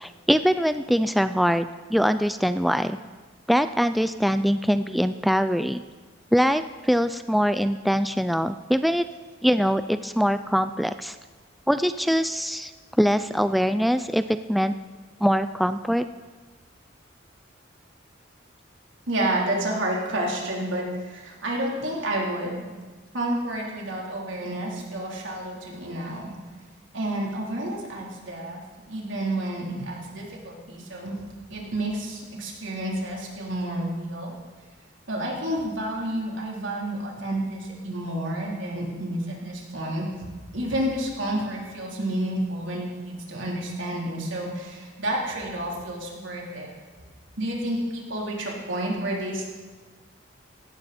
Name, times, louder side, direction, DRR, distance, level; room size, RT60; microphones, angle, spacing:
voice 1, 0.0-3.0 3.5-5.8 6.3-9.1 9.4-11.2 11.7-12.7 13.0-14.2 14.5-14.7 15.2-16.0, equal, ahead, 11 dB, 0.3 m, -23 dB
voice 2, 19.1-22.7 23.1-26.3 26.9-28.6 28.9-31.2 31.5-34.4 35.1-40.3 40.5-46.7 47.4-49.5, right 1 dB, 85° right, -2 dB, 3.6 m, -30 dB
16.5 x 14.5 x 4.3 m, 1.4 s
head